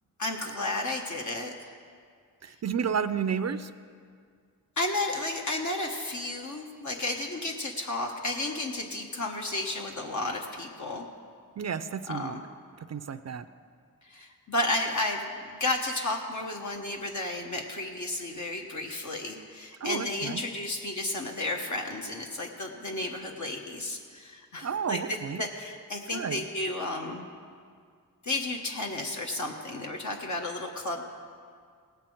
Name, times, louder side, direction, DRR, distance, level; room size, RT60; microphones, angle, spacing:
voice 1, 0.2-1.7 2.5-2.6 4.8-11.1 12.1-12.4 14.0-27.3 28.2-31.0, left 2 dB, 55° left, 1 dB, 1.1 m, -32 dB
voice 2, 2.4-3.7 11.6-12.4 12.9-13.5 19.8-20.4 24.6-25.4 26.1-26.4, right 7 dB, 45° right, 12 dB, 0.5 m, -31 dB
17.5 x 5.8 x 7.7 m, 2.1 s
wide cardioid pair, 80°, 36 cm